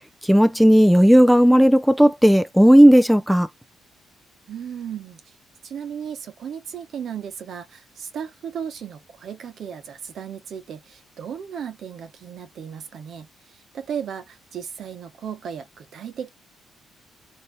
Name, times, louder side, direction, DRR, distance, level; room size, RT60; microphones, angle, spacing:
voice 1, 0.2-3.5, equal, ahead, 0.4 m, -14 dB
voice 2, 4.5-5.3 5.6-16.3, right 8 dB, 65° right, 1.0 m, -35 dB
3.3 x 2.8 x 4.2 m
cardioid pair, 90°, 0 cm